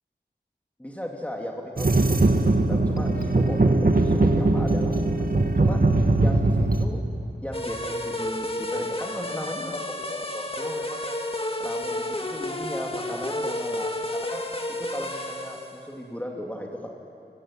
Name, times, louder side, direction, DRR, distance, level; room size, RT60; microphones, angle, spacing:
voice 1, 0.8-5.8 6.2-7.0 7.4-11.2 11.6-14.4 14.7-16.9, equal, 10° left, -1 dB, 2.9 m, -36 dB
sound 1, 1.8-6.8, right 2 dB, 55° right, 1.9 m, -21 dB
sound 2, 7.5-15.8, left 1 dB, 30° left, 2.0 m, -31 dB
24.5 x 24.5 x 9.9 m, 2.8 s
wide cardioid pair, 65°, 18 cm